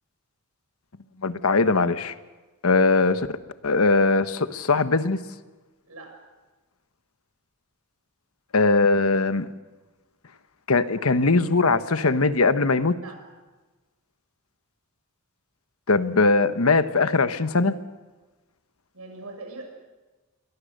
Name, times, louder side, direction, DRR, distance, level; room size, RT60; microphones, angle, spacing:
voice 1, 1.2-2.1 2.6-3.3 3.6-5.2 8.5-9.5 10.7-13.0 15.9-17.7, left 3 dB, 75° left, 12 dB, 1.2 m, -20 dB
voice 2, 18.9-19.7, right 3 dB, 85° right, 3 dB, 6.8 m, -41 dB
29.0 x 22.5 x 6.6 m, 1.2 s
head